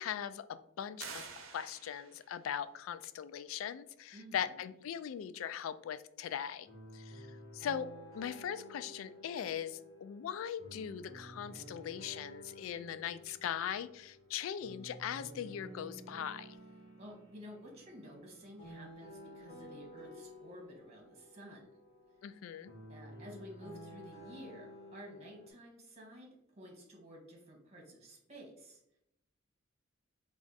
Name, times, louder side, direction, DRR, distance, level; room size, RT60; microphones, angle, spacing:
voice 1, 0.0-6.7 6.9-7.3 7.5-7.9 8.1-16.6 22.2-22.7, left 9 dB, 80° left, 13 dB, 0.3 m, -40 dB
sound 1, 1.0-2.4, right 5 dB, 80° right, 0.7 m, -48 dB
voice 2, 4.1-4.5 17.0-21.7 22.9-26.3 26.6-28.8, equal, 35° right, 0 dB, 1.3 m, -52 dB
sound 2, 6.6-25.5, equal, 30° left, 1.6 m, -53 dB
4.3 x 2.4 x 3.9 m, 0.78 s
head